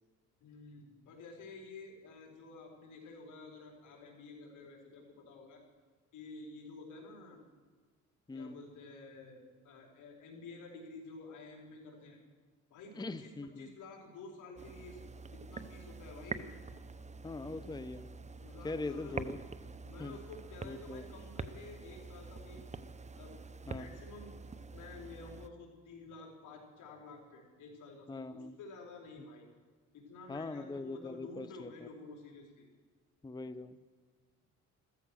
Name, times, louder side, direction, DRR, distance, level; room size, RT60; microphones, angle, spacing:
voice 1, 0.4-5.6 6.1-7.4 8.3-12.2 12.7-15.0 15.3-16.5 18.4-19.3 19.8-22.6 23.2-23.3 23.7-24.3 24.7-29.5 29.9-32.6, left 3 dB, 80° left, 0 dB, 4.6 m, -51 dB
voice 2, 12.9-13.7 17.2-18.1 18.6-19.4 20.0-20.2 20.6-21.0 23.7-23.9 28.1-28.6 30.3-31.9 33.2-33.8, left 3 dB, 15° left, 13 dB, 0.7 m, -41 dB
sound 1, 14.6-25.5, right 4 dB, 25° right, 0.8 m, -46 dB
15.0 x 14.5 x 6.4 m, 1.4 s
cardioid pair, 90°, 30 cm